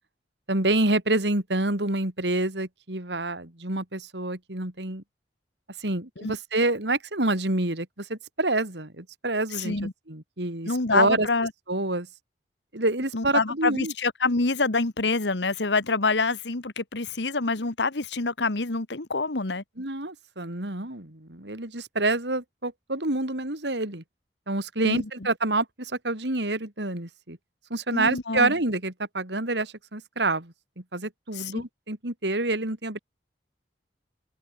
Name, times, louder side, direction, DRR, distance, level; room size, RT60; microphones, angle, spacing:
voice 1, 0.5-5.0 5.8-11.3 11.7-12.1 12.7-13.9 19.8-24.0 24.5-27.4 27.7-30.5 30.9-33.0, right 2 dB, 75° right, 3.7 m, -27 dB
voice 2, 9.6-9.9 10.7-11.5 13.1-19.6 24.8-25.1 27.9-28.5 31.4-31.5, left 3 dB, 80° left, 1.7 m, -26 dB
head